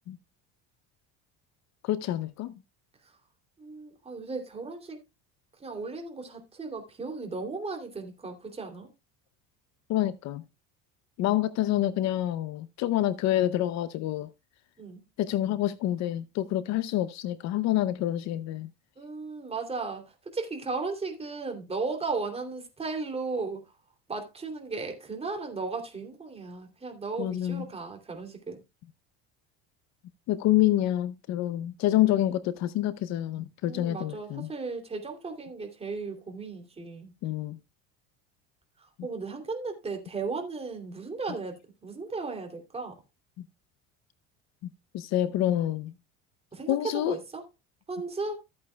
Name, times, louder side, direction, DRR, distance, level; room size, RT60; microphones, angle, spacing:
voice 1, 1.8-2.5 9.9-10.4 11.2-14.3 15.2-18.7 27.2-27.6 30.3-34.5 37.2-37.6 44.9-45.9 46.7-47.2, left 13 dB, 55° left, 0.7 m, -27 dB
voice 2, 3.6-5.0 5.6-8.9 14.8-15.0 19.0-23.6 24.1-28.6 33.6-37.1 38.8-43.0 45.5-45.6 46.5-47.4 47.9-48.4, right 4 dB, 20° right, 2.8 m, -36 dB
14.0 x 8.6 x 2.2 m
cardioid pair, 130°, 32 cm